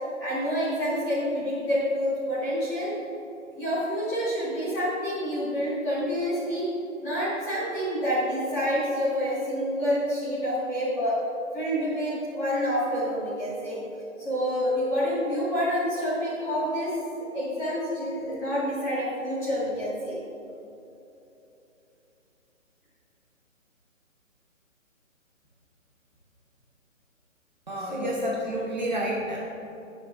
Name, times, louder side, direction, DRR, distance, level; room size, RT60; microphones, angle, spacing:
voice 1, 0.2-2.9 3.5-6.7 7.0-11.1 11.5-13.8 14.2-20.2 27.8-28.3, equal, 5° left, -12 dB, 1.9 m, -28 dB
voice 2, 27.7-29.4, right 1 dB, 35° right, -4 dB, 1.1 m, -30 dB
20.5 x 6.9 x 2.6 m, 2.9 s
hypercardioid pair, 175°, 41 cm